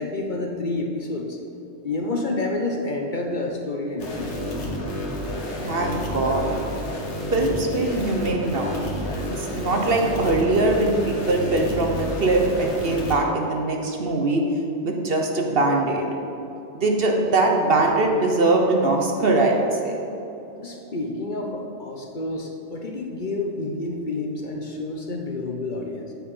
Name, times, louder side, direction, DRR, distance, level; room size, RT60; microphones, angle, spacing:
voice 1, 0.0-1.4 1.8-4.5 20.6-26.1, left 2 dB, 45° left, 2 dB, 1.0 m, -29 dB
sound 1, 4.0-13.2, left 1 dB, 70° left, 1.7 m, -30 dB
voice 2, 5.6-6.5 7.3-8.8 9.4-14.4 14.8-16.1 16.7-19.9, right 2 dB, 55° right, 2 dB, 1.2 m, -22 dB
8.6 x 8.0 x 5.5 m, 3.0 s
omnidirectional pair, 1.2 m